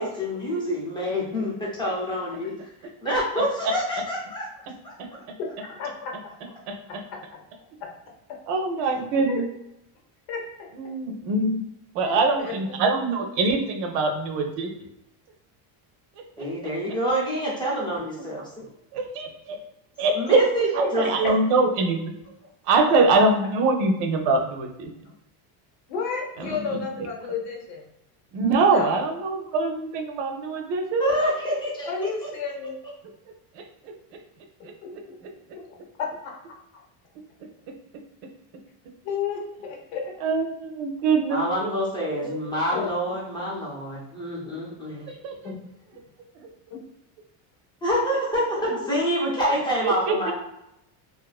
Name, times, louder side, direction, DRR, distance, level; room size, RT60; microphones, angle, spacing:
voice 1, 0.0-2.5 3.0-4.5 4.8-4.9 16.4-18.6 20.1-21.1 31.0-31.9 41.3-45.1 47.8-50.3, equal, 10° left, -4 dB, 0.5 m, -27 dB
voice 2, 5.4-6.3 6.9-7.4 8.8-8.9 9.2-9.4 10.3-10.9 12.0-12.5 21.2-21.3 25.9-27.9 28.7-29.1 31.9-32.8 34.6-35.2 35.6-36.8 39.0-40.3 42.7-43.1 45.4-45.6 46.7-46.8 48.6-48.7, left 5 dB, 90° left, 0 dB, 0.9 m, -33 dB
voice 3, 8.5-9.5 10.8-11.6 11.9-14.7 16.4-16.5 18.9-19.6 20.0-20.4 20.8-22.0 22.7-24.9 26.4-26.6 28.3-31.1 40.2-41.7 42.3-42.4 45.2-45.3 49.8-50.3, right 3 dB, 80° right, 4 dB, 0.7 m, -23 dB
2.5 x 2.4 x 2.3 m, 0.84 s
cardioid pair, 160°, 48 cm